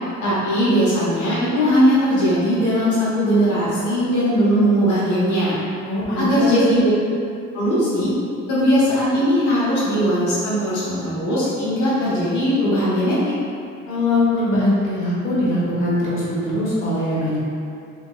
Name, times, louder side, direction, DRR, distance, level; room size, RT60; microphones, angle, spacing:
voice 1, 0.2-5.5 6.2-6.9 7.5-8.1 8.5-13.2, equal, 75° left, -10 dB, 1.1 m, -19 dB
voice 2, 5.8-6.6 13.9-17.4, left 1 dB, 45° left, -9 dB, 1.2 m, -21 dB
3.5 x 2.8 x 2.4 m, 2.5 s
cardioid pair, 90°, 30 cm